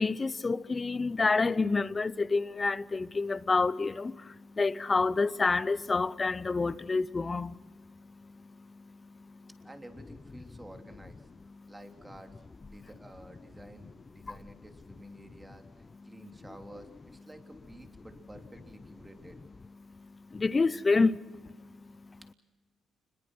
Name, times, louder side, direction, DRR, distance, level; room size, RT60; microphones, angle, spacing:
voice 1, 0.0-9.5 11.6-11.7 14.2-14.3 19.8-22.2, left 3 dB, 30° left, 0.8 m, -29 dB
voice 2, 9.6-11.3 11.7-12.3 12.6-19.4, right 1 dB, 15° right, 3.2 m, -51 dB
29.5 x 21.5 x 6.3 m
cardioid pair, 90°, 0 cm